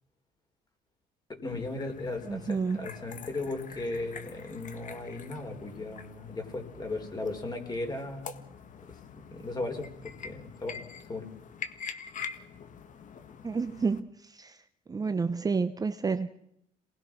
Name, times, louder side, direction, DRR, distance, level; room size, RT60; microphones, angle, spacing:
voice 1, 1.3-8.3 9.1-9.9 10.2-10.8 11.1-11.3, left 2 dB, 25° left, 5 dB, 4.5 m, -36 dB
sound 1, 1.5-14.0, left 6 dB, 50° left, 1.8 m, -45 dB
voice 2, 2.3-2.9 13.4-14.1 14.4-14.5 14.9-16.3, right 4 dB, 20° right, 10 dB, 0.8 m, -29 dB
27.0 x 20.0 x 6.2 m, 0.76 s
cardioid pair, 110°, 17 cm